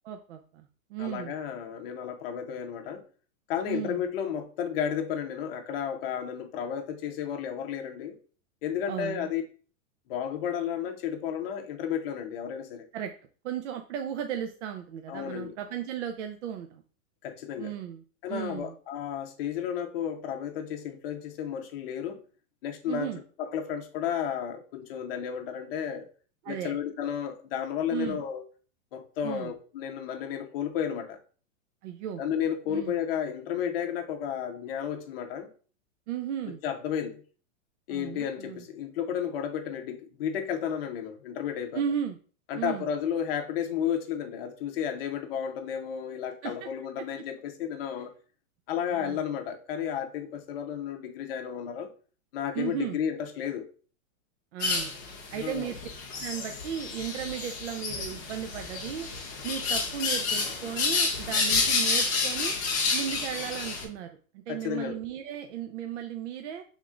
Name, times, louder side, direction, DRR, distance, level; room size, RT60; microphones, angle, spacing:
voice 1, 0.0-1.3 3.6-4.0 8.9-9.3 12.9-13.1 13.4-16.8 17.6-18.0 18.3-18.7 22.9-23.2 26.4-26.8 27.9-28.2 29.2-29.5 31.8-32.2 32.7-32.9 36.1-36.6 37.9-38.6 41.7-42.2 42.5-42.9 46.4-46.7 48.9-49.2 52.5-53.0 54.5-54.9 55.3-55.8 56.2-59.1 59.4-62.6 62.9-66.6, right 9 dB, 60° right, 5 dB, 0.6 m, -35 dB
voice 2, 1.0-3.0 3.5-8.2 8.6-9.4 10.1-12.9 15.1-15.6 17.2-17.7 18.2-22.2 22.6-23.1 23.4-26.1 26.5-28.4 28.9-31.2 32.2-35.5 36.6-37.2 37.9-41.8 42.5-48.1 48.7-51.9 52.3-53.7 55.3-55.7 64.5-65.0, left 8 dB, 45° left, 5 dB, 0.8 m, -32 dB
sound 1, 54.6-63.8, left 4 dB, 15° left, 0.3 m, -30 dB
6.0 x 3.6 x 2.4 m, 0.39 s
supercardioid pair, 160°, 41 cm